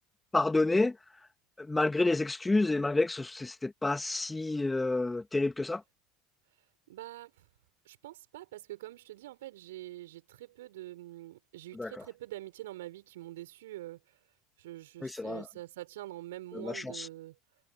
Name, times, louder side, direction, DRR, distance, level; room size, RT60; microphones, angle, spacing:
voice 1, 0.3-0.9 1.6-5.8 11.8-11.9 15.0-15.4 16.5-17.1, left 2 dB, 10° left, 2.5 m, -29 dB
voice 2, 6.9-7.4 7.8-14.2 14.6-17.4, right 16 dB, 70° right, 5.6 m, -45 dB
figure-of-eight pair, 70°, 0 cm